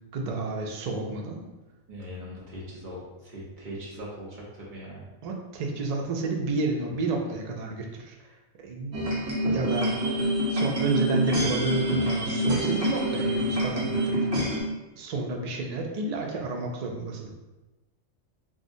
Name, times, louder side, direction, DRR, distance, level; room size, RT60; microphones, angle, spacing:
voice 1, 0.1-1.4 5.2-8.1 8.6-9.1 9.4-9.9 10.5-14.5 15.0-17.3, right 3 dB, 85° right, 1 dB, 0.3 m, -30 dB
voice 2, 1.9-5.0, equal, 45° right, -5 dB, 0.9 m, -40 dB
sound 1, 8.9-14.6, right 1 dB, 60° right, 1.2 m, -26 dB
4.6 x 2.0 x 2.6 m, 1.1 s
omnidirectional pair, 1.3 m